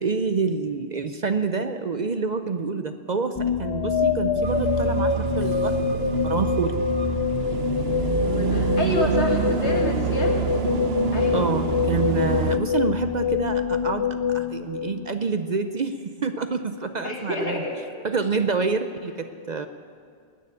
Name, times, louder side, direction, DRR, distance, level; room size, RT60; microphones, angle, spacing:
voice 1, 0.0-6.8 9.0-9.1 11.3-14.1 14.3-17.6 18.0-19.7, right 4 dB, 50° right, 8 dB, 0.6 m, -27 dB
sound 1, 3.3-15.4, left 6 dB, 50° left, 0.3 m, -25 dB
sound 2, 4.4-12.6, right 7 dB, 70° right, 1.0 m, -27 dB
voice 2, 8.2-10.4 11.1-11.6 17.0-18.1, left 1 dB, 75° left, 0 dB, 2.3 m, -29 dB
20.0 x 6.8 x 9.7 m, 2.2 s
omnidirectional pair, 1.1 m